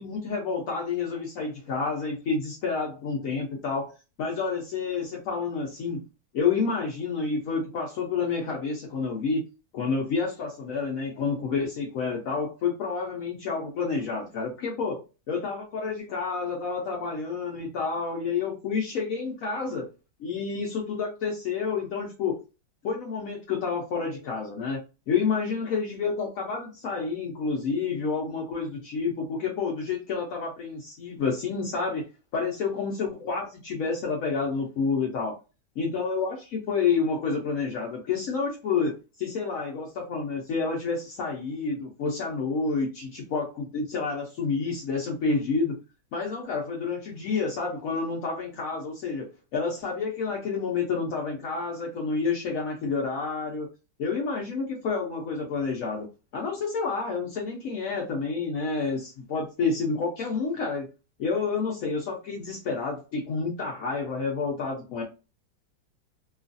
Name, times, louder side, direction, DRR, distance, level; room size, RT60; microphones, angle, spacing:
voice 1, 0.0-3.9 4.2-6.0 6.3-9.4 9.7-15.0 15.3-19.9 20.2-22.4 22.8-24.8 25.1-32.1 32.3-35.3 35.8-45.8 46.1-53.7 54.0-56.1 56.3-60.9 61.2-65.0, left 4 dB, 75° left, -1 dB, 0.7 m, -29 dB
3.1 x 2.4 x 2.5 m, 0.30 s
omnidirectional pair, 2.2 m